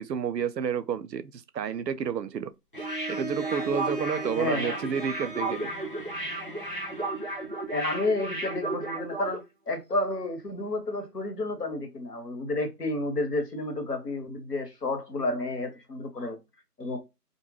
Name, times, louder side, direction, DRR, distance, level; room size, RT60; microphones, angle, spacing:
voice 1, 0.0-2.5 3.1-5.7, right 7 dB, 85° right, 0.6 m, -30 dB
Bowed string instrument, 2.7-7.6, right 2 dB, 35° left, 0.8 m, -38 dB
sound 1, 2.8-9.4 9.7-9.8, right 2 dB, 40° right, 0.5 m, -34 dB
voice 2, 4.4-4.8 7.7-16.4 16.8-17.0, left 2 dB, 75° left, 1.3 m, -31 dB
2.5 x 2.2 x 3.2 m
figure-of-eight pair, 170°, 48 cm